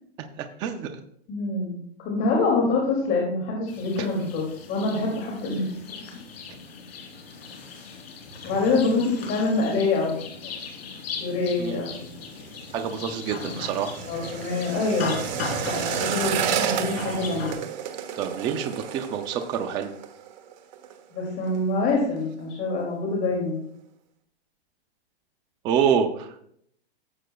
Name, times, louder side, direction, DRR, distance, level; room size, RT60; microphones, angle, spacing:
voice 1, 0.4-1.0 4.0-4.1 11.6-11.8 12.7-14.0 18.2-19.9 25.6-26.4, right 7 dB, 15° right, 6 dB, 0.4 m, -27 dB
voice 2, 1.3-4.4 4.7-5.7 8.4-10.2 10.4-10.5 11.2-12.1 14.1-15.1 15.6-17.6 21.1-23.6, left 3 dB, 30° left, -2 dB, 2.4 m, -25 dB
sound 1, 3.7-17.5, left 4 dB, 65° left, 3.3 m, -38 dB
sound 2, 11.9-21.0 21.3-21.6 21.9-22.4 22.8-22.9, right 9 dB, 45° right, 1.2 m, -32 dB
14.0 x 7.6 x 2.3 m, 0.67 s
hypercardioid pair, 145°, 32 cm